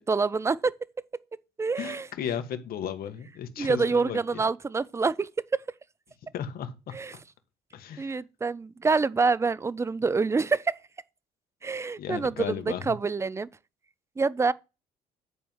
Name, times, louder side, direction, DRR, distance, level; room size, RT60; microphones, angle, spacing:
voice 1, 0.1-0.7 1.6-2.1 3.6-5.6 6.9-7.1 8.0-10.8 11.6-13.5 14.2-14.5, right 4 dB, 15° right, 0.5 m, -26 dB
voice 2, 1.8-4.4 6.3-7.0 7.7-8.2 12.0-12.8, left 9 dB, 60° left, 1.7 m, -35 dB
10.5 x 4.5 x 7.2 m
cardioid pair, 110°, 17 cm